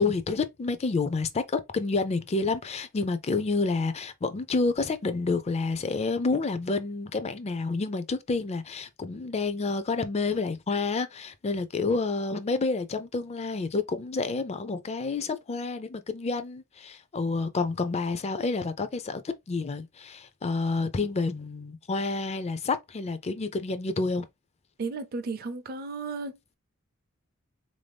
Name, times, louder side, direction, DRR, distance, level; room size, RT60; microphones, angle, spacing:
voice 1, 0.0-19.2 19.5-24.3, left 3 dB, 30° left, 0.4 m, -29 dB
voice 2, 24.8-26.6, right 4 dB, 45° right, 0.5 m, -34 dB
3.7 x 2.6 x 3.3 m
head